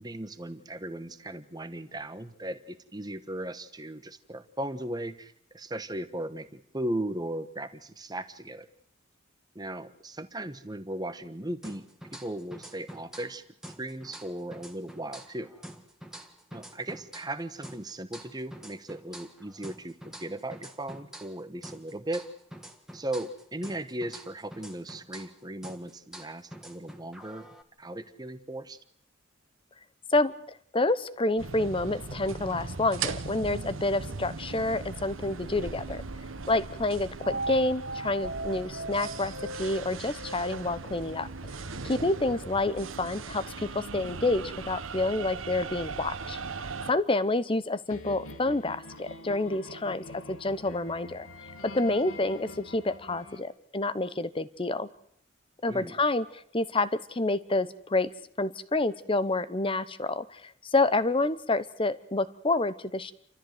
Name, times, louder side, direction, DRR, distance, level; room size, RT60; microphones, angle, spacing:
voice 1, 0.0-8.7 9.5-11.9 12.1-13.4 13.8-15.5 16.5-22.2 22.9-27.5 27.8-28.8 55.7-56.0, right 1 dB, 20° right, 11 dB, 1.2 m, -37 dB
sound 1, 11.6-13.4 13.6-17.4 17.6-21.4 21.6-25.4 25.6-27.6, right 1 dB, 5° right, 1.7 m, -46 dB
voice 2, 30.7-36.0 36.5-39.3 39.6-41.3 41.8-46.4 46.9-51.3 51.6-54.9 55.6-58.1 58.4-63.1, left 2 dB, 25° left, 15 dB, 0.8 m, -28 dB
sound 2, 31.4-46.9, right 3 dB, 75° right, 1.2 m, -38 dB
sound 3, 47.9-53.4, left 2 dB, 90° left, 2.4 m, -45 dB
29.0 x 14.0 x 7.8 m, 0.67 s
head